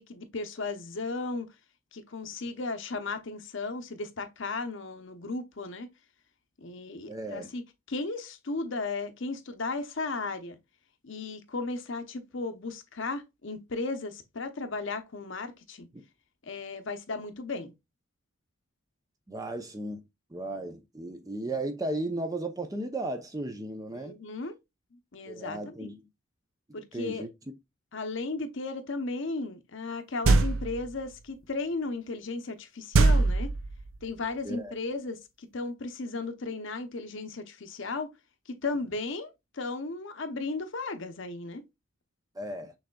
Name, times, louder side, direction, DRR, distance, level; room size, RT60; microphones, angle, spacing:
voice 1, 0.0-1.5 1.9-5.9 6.6-7.6 7.9-10.6 11.0-15.9 16.4-17.7 23.9-24.5 24.9-25.9 26.7-27.2 27.9-33.5 34.0-38.1 38.5-41.6, left 3 dB, 55° left, 0.7 m, -35 dB
voice 2, 7.1-7.5 15.9-16.0 19.3-20.0 20.3-24.2 25.3-26.1 26.9-27.3 34.4-34.7 42.4-42.7, right 2 dB, 15° right, 0.5 m, -35 dB
sound 1, 30.2-30.9 32.9-34.0, right 3 dB, 70° right, 0.6 m, -22 dB
6.3 x 3.3 x 2.2 m
head